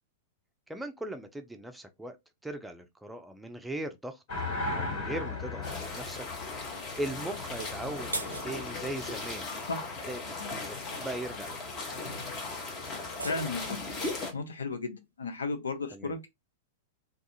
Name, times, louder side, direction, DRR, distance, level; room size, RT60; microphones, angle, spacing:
voice 1, 0.7-2.2 2.4-4.2 4.7-6.3 7.0-9.5 9.8-11.7 15.9-16.1, right 1 dB, 5° right, 0.4 m, -39 dB
sound 1, 4.3-10.1 13.6-13.7, left 2 dB, 50° left, 1.6 m, -38 dB
sound 2, 5.6-14.3, left 3 dB, 30° left, 0.9 m, -38 dB
sound 3, 7.4-9.0 12.9-14.4, right 3 dB, 85° right, 0.4 m, -41 dB
voice 2, 13.2-13.8 14.3-16.3, left 3 dB, 75° left, 0.5 m, -34 dB
2.4 x 2.3 x 2.6 m
figure-of-eight pair, 100°, 0 cm